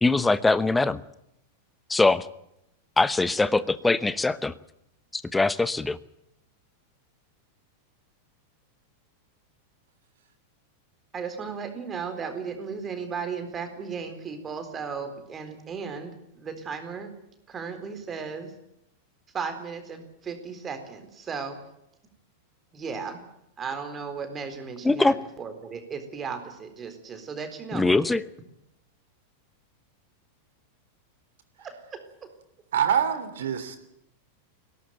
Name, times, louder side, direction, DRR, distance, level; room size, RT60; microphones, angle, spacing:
voice 1, 0.0-1.0 1.9-2.3 3.0-4.5 5.1-6.0 24.8-25.1 27.7-28.2, left 3 dB, 10° left, 16 dB, 1.0 m, -22 dB
voice 2, 11.1-17.1 17.5-18.5 19.3-21.6 22.7-23.2 23.6-28.1 31.6-32.3, right 5 dB, 20° right, 7 dB, 4.0 m, -35 dB
voice 3, 32.7-33.8, right 8 dB, 60° right, 11 dB, 3.1 m, -25 dB
21.0 x 18.0 x 9.2 m, 0.81 s
figure-of-eight pair, 90°, 0 cm